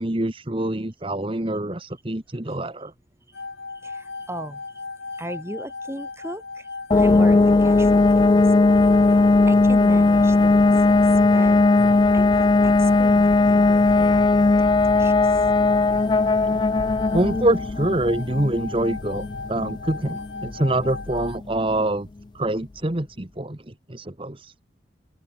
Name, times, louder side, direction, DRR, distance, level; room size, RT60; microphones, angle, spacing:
voice 1, 0.0-2.9 16.5-16.6 17.1-22.1 22.3-24.5, right 1 dB, 30° right, 1.4 m, -25 dB
sound 1, 3.3-21.4, left 4 dB, 85° left, 2.9 m, -36 dB
voice 2, 3.7-14.5 14.9-15.6, right 1 dB, 15° right, 6.5 m, -38 dB
sound 2, 6.9-21.5, left 3 dB, 25° left, 0.3 m, -18 dB
open air
head